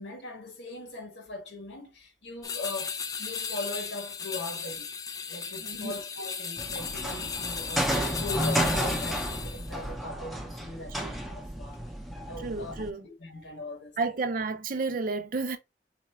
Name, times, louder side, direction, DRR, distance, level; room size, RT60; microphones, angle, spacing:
voice 1, 0.0-4.9 5.3-11.9 12.3-12.8 13.0-14.0, left 2 dB, 80° left, 1.5 m, -40 dB
sound 1, 2.4-9.7, left 6 dB, 20° left, 0.3 m, -35 dB
voice 2, 5.6-5.9 11.0-11.1 12.4-13.1 14.0-15.6, right 3 dB, 50° right, 0.6 m, -31 dB
sound 2, 6.6-12.9, right 1 dB, ahead, 0.7 m, -32 dB
4.2 x 2.3 x 4.2 m
head